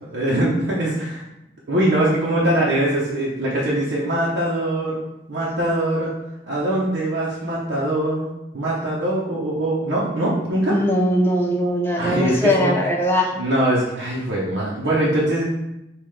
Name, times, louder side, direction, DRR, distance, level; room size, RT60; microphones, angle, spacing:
voice 1, 0.0-1.2 1.7-5.0 5.3-6.1 6.5-8.3 8.5-10.8 12.0-12.8 13.3-15.4, right 1 dB, 75° right, -6 dB, 0.8 m, -22 dB
voice 2, 10.7-13.3, equal, 10° left, 0 dB, 0.5 m, -20 dB
5.4 x 2.4 x 3.2 m, 0.90 s
head